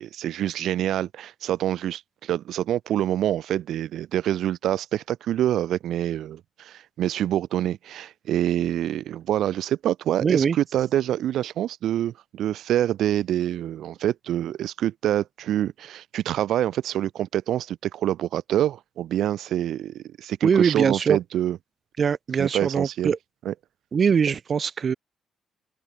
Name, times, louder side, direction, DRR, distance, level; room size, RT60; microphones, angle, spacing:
voice 1, 0.0-21.6 22.4-23.1 23.4-23.5, right 12 dB, 75° right, 0.5 m, -26 dB
voice 2, 10.2-10.6 20.4-21.2 22.0-23.2 23.9-24.9, right 6 dB, 45° right, 2.8 m, -22 dB
cardioid pair, 90°, 0 cm